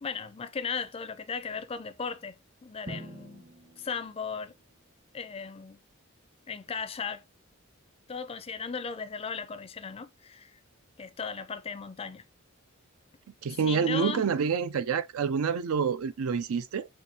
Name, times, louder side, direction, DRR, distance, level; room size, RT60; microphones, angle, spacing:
voice 1, 0.0-2.3 2.6-3.4 3.8-4.5 5.1-5.8 6.5-7.2 8.1-10.6 11.0-12.2 13.6-14.2, left 5 dB, 30° left, 0.4 m, -36 dB
Drum, 2.9-4.8, right 1 dB, 50° right, 1.1 m, -46 dB
voice 2, 13.4-16.9, right 6 dB, 90° right, 0.4 m, -27 dB
5.0 x 2.6 x 2.7 m
head